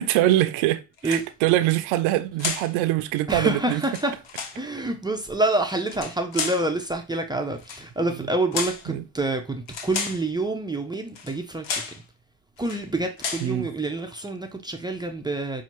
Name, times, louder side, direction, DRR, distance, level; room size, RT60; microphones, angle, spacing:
voice 1, 0.0-3.8 8.9-9.0 13.4-13.7, right 14 dB, 85° right, 0.6 m, -23 dB
sound 1, 1.0-1.5 2.4-2.7 3.7-4.6 5.8-6.7 7.6-7.9 8.5-8.9 9.7-10.3 11.1-11.4 11.6-12.0 12.6-12.8 13.2-13.5, left 5 dB, 65° left, 1.0 m, -32 dB
voice 2, 3.3-4.2 4.5-11.8 12.6-15.6, right 2 dB, 10° right, 0.3 m, -27 dB
5.8 x 2.4 x 2.9 m
cardioid pair, 110°, 46 cm